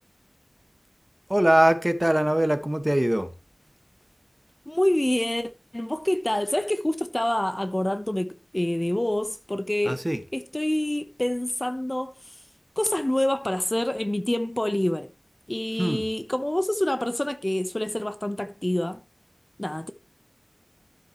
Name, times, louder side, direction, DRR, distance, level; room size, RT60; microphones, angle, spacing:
voice 1, 1.3-3.3 9.8-10.2 15.8-16.0, right 1 dB, 20° right, 1.4 m, -22 dB
voice 2, 4.7-10.0 10.3-12.1 12.8-15.1 15.5-19.0 19.6-19.9, left 1 dB, 25° left, 0.9 m, -26 dB
12.5 x 7.7 x 3.0 m
wide cardioid pair, 40°, 0 cm